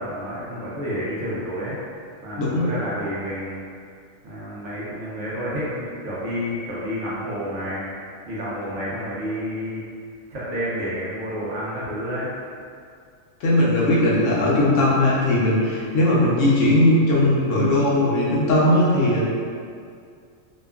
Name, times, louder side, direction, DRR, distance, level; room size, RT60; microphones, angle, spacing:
voice 1, 0.0-1.8 2.2-3.6 4.2-7.9 8.3-9.8 10.3-12.3, equal, 65° right, -9 dB, 0.9 m, -29 dB
voice 2, 2.4-2.7 13.4-19.3, left 1 dB, 70° left, -6 dB, 0.9 m, -19 dB
2.8 x 2.3 x 2.3 m, 2.2 s
omnidirectional pair, 1.4 m